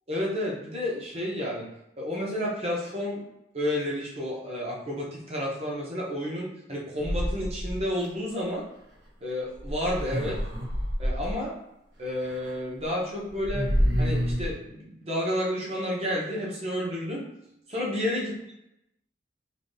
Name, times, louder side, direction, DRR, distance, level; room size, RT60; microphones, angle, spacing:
voice 1, 0.1-1.7 2.0-3.2 3.5-8.6 9.2-10.4 11.0-11.5 12.0-13.7 14.0-17.2 17.7-18.3, left 1 dB, 35° right, -3 dB, 0.9 m, -31 dB
sound 1, 7.0-8.1 9.6-11.3 12.2-12.5 12.8-12.9 13.3-14.5, equal, 85° right, 0.8 m, -28 dB
3.4 x 2.8 x 2.7 m, 0.83 s
head